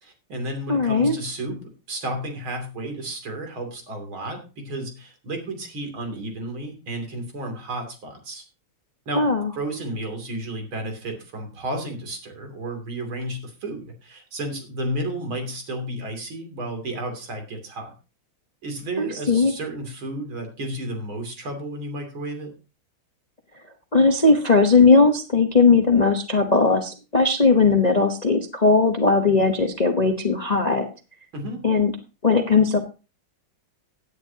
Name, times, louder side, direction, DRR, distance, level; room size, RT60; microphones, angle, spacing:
voice 1, 0.0-8.4 9.1-9.3 9.5-17.9 18.6-22.5 31.3-31.6, right 1 dB, 70° right, 4 dB, 3.8 m, -32 dB
voice 2, 0.7-1.1 9.1-9.5 19.0-19.5 23.9-30.9 31.6-31.9 32.2-32.8, left 4 dB, 30° left, 4 dB, 0.7 m, -18 dB
16.5 x 10.0 x 2.8 m, 0.32 s
omnidirectional pair, 2.3 m